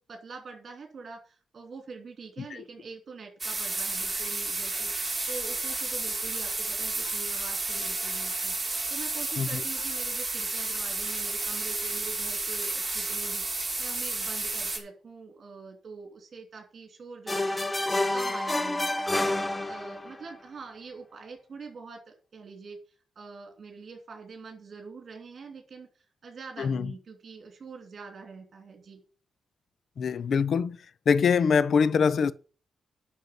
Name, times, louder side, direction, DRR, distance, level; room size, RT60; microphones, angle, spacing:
voice 1, 0.1-19.3 19.7-22.8 23.1-29.0, right 4 dB, 50° right, 3.0 m, -45 dB
sound 1, 3.4-14.8, right 2 dB, 20° right, 4.6 m, -31 dB
sound 2, 17.3-20.2, left 2 dB, 15° left, 0.9 m, -28 dB
voice 2, 26.6-26.9 30.0-30.8 31.1-32.3, left 6 dB, 60° left, 0.6 m, -23 dB
9.2 x 6.3 x 7.8 m
cardioid pair, 100°, 0 cm